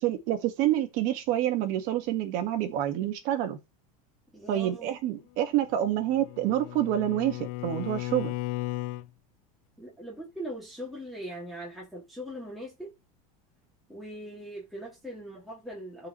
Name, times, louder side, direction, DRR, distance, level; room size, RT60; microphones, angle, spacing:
voice 1, 0.0-3.6 4.5-8.3, right 12 dB, 50° right, 1.7 m, -27 dB
voice 2, 4.3-4.9 9.8-12.9 13.9-16.1, equal, ahead, 2.4 m, -40 dB
Bowed string instrument, 5.7-9.1, left 17 dB, 80° left, 0.6 m, -35 dB
13.5 x 4.7 x 3.1 m
supercardioid pair, 160°, 18 cm